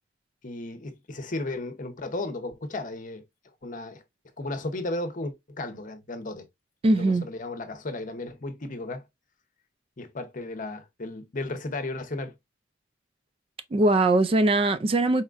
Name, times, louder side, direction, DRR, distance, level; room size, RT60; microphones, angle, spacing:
voice 1, 0.4-3.2 3.6-4.0 4.4-6.5 6.9-9.0 10.0-12.3, left 2 dB, 45° left, 0.8 m, -34 dB
voice 2, 6.8-7.3 13.7-15.2, right 2 dB, 30° right, 0.3 m, -21 dB
4.2 x 3.6 x 2.4 m
head